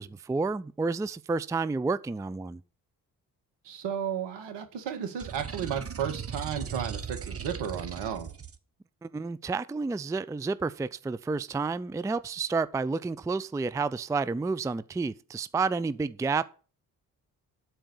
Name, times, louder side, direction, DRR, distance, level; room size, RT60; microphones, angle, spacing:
voice 1, 0.0-2.6 9.0-16.5, right 4 dB, 10° right, 0.4 m, -30 dB
voice 2, 3.6-8.3, right 8 dB, 70° right, 2.0 m, -33 dB
sound 1, 5.2-8.6, right 7 dB, 30° right, 1.2 m, -38 dB
12.5 x 4.5 x 8.0 m
hypercardioid pair, 45°, 44 cm